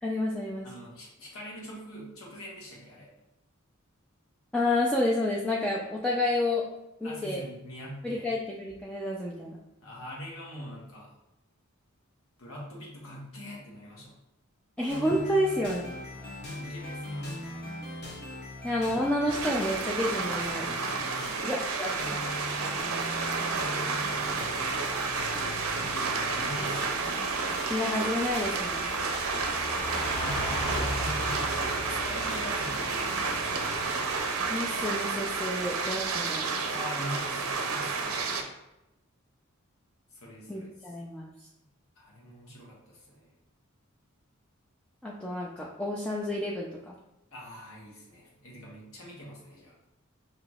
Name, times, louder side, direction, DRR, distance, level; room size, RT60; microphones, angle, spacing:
voice 1, 0.0-0.7 4.5-6.7 7.0-7.4 8.0-9.6 14.8-15.9 18.6-20.6 21.4-22.2 27.7-28.9 30.7-30.8 34.5-36.8 40.5-41.3 45.0-46.9, left 1 dB, 5° left, -4 dB, 0.4 m, -30 dB
voice 2, 0.6-3.1 7.0-8.3 9.8-11.1 12.4-14.1 16.1-17.7 20.6-21.5 24.0-25.4 25.7-27.0 30.2-34.0 36.7-38.5 40.1-40.9 42.0-43.3 47.3-49.7, equal, 75° left, -4 dB, 1.3 m, -43 dB
sound 1, 14.9-34.2, left 1 dB, 50° left, 0.9 m, -41 dB
sound 2, 19.3-38.4, right 4 dB, 75° right, 0.6 m, -31 dB
Car passing by / Truck, 24.0-36.2, equal, 25° left, 1.5 m, -40 dB
5.8 x 2.8 x 2.4 m, 0.92 s
head